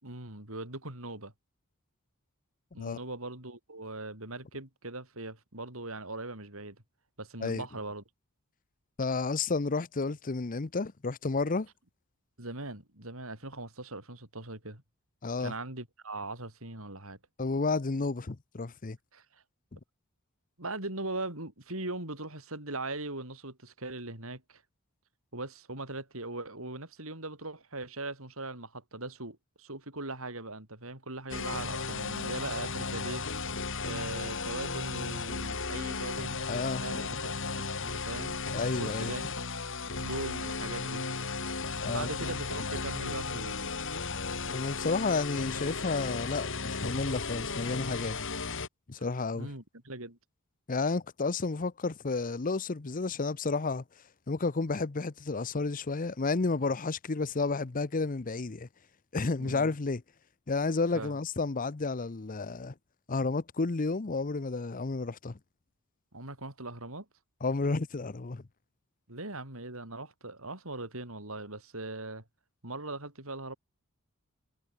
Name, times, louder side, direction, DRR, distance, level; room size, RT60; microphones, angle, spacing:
voice 1, 0.0-1.3 2.7-6.8 7.2-8.0 12.4-14.8 15.4-17.2 19.1-19.2 20.6-24.6 25.3-33.3 33.8-38.4 38.8-39.3 40.0-41.0 41.8-43.8 49.3-50.2 59.4-59.7 60.9-61.2 66.1-67.1 69.1-72.2 72.6-73.6, right 2 dB, 70° right, 6.4 m, -40 dB
voice 2, 9.0-11.7 15.2-15.5 17.4-19.0 19.7-19.8 36.5-37.1 38.5-39.1 41.8-42.1 44.5-48.2 48.9-49.5 50.7-53.8 54.3-58.7 59.1-60.0 60.5-62.7 63.1-65.4 67.4-68.4, left 3 dB, 40° left, 0.7 m, -31 dB
sound 1, 31.3-48.7, left 4 dB, 60° left, 3.3 m, -35 dB
head